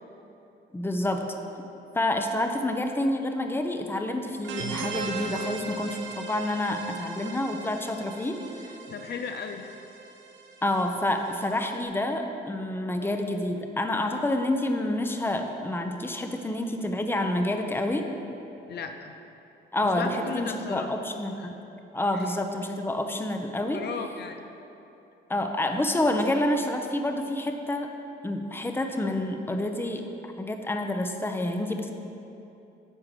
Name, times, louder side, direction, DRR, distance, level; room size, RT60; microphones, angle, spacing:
voice 1, 0.7-1.4 1.9-8.7 10.6-18.1 19.7-21.4 21.9-23.8 25.3-27.9 28.2-31.9, left 1 dB, 10° left, 5 dB, 0.8 m, -28 dB
sound 1, 4.4-11.8, right 5 dB, 75° right, 1.0 m, -38 dB
voice 2, 8.9-9.6 18.7-19.1 19.8-20.9 22.1-22.2 23.7-24.4, left 6 dB, 55° left, 6 dB, 0.6 m, -35 dB
9.9 x 4.7 x 7.5 m, 2.9 s
cardioid pair, 90°, 20 cm